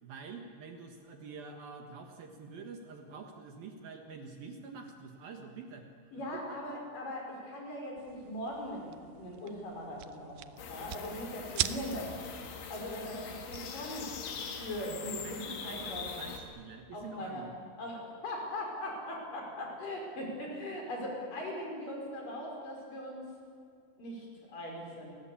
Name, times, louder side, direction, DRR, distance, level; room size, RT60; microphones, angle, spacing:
voice 1, 0.0-5.9 6.3-6.7 14.9-17.5, right 5 dB, 60° right, 4 dB, 3.0 m, -47 dB
voice 2, 6.1-12.3 12.7-14.1 14.6-15.4 15.6-16.2 16.9-17.5 17.8-23.3 24.0-25.1, left 1 dB, 45° left, 0 dB, 6.9 m, -40 dB
sound 1, 8.0-14.7, right 12 dB, 85° right, 2.0 m, -42 dB
sound 2, 10.6-16.4, left 6 dB, 85° left, 4.8 m, -42 dB
30.0 x 21.0 x 8.6 m, 2.3 s
omnidirectional pair, 5.2 m